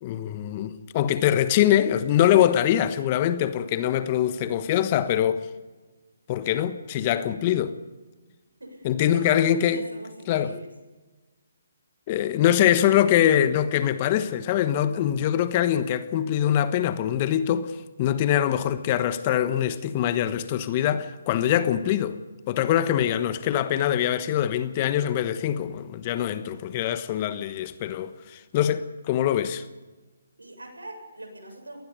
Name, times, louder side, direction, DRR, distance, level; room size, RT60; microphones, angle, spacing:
voice 1, 0.0-5.5 6.3-7.7 8.8-9.8 10.3-10.5 12.1-22.2 22.5-29.6, left 11 dB, 30° left, 1.2 m, -23 dB
voice 2, 8.6-10.7 30.4-31.8, right 1 dB, 85° right, 7.3 m, -42 dB
27.0 x 19.0 x 5.2 m
figure-of-eight pair, 140°, 0 cm